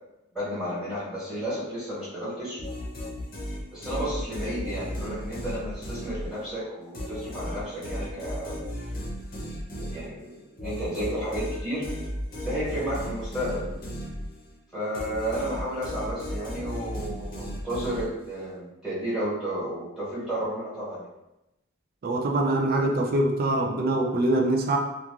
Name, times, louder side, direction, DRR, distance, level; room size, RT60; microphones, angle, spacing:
voice 1, 0.3-2.6 3.7-8.6 9.8-11.8 12.4-13.7 14.7-21.1, equal, 5° right, -12 dB, 1.3 m, -32 dB
sound 1, 2.6-6.6 6.9-14.6 14.9-18.4, equal, 45° left, 0.7 m, -35 dB
voice 2, 22.0-24.8, right 1 dB, 45° right, 1 dB, 0.4 m, -24 dB
3.0 x 2.3 x 2.4 m, 0.92 s
head